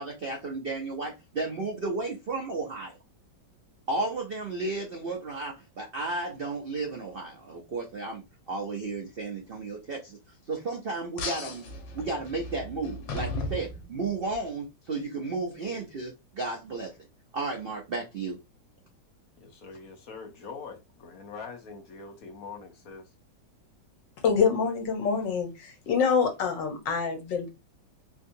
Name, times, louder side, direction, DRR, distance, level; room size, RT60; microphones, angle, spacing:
voice 1, 0.0-3.0 3.9-10.2 10.5-16.9 17.3-18.4, right 3 dB, 80° right, 0.5 m, -33 dB
sound 1, 11.2-14.4, left 2 dB, 85° left, 1.5 m, -36 dB
voice 2, 19.4-23.1, left 5 dB, 55° left, 1.2 m, -43 dB
voice 3, 24.2-27.5, left 5 dB, 70° left, 1.6 m, -26 dB
3.6 x 2.7 x 2.6 m
omnidirectional pair, 2.0 m